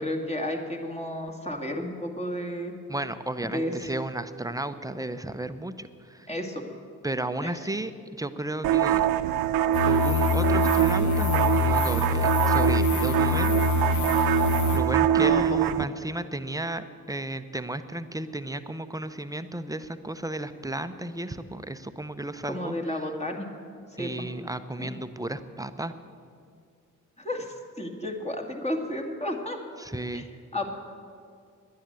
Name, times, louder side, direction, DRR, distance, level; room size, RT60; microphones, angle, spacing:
voice 1, 0.0-2.7 3.4-3.9 6.3-6.6 7.4-7.5 15.2-15.6 22.5-23.5 24.0-24.3 24.8-25.0 27.2-29.6 30.1-30.2 30.5-30.7, left 1 dB, 20° left, 2 dB, 2.3 m, -32 dB
voice 2, 2.9-6.3 7.0-9.0 9.8-13.6 14.7-23.0 24.0-25.9 29.8-30.3, right 1 dB, 10° right, 11 dB, 0.8 m, -33 dB
sound 1, 8.6-15.8, right 11 dB, 80° right, 0.5 m, -24 dB
sound 2, 9.7-14.8, left 5 dB, 55° left, 1.3 m, -25 dB
10.5 x 10.0 x 8.2 m, 2.3 s
supercardioid pair, 40°, 35 cm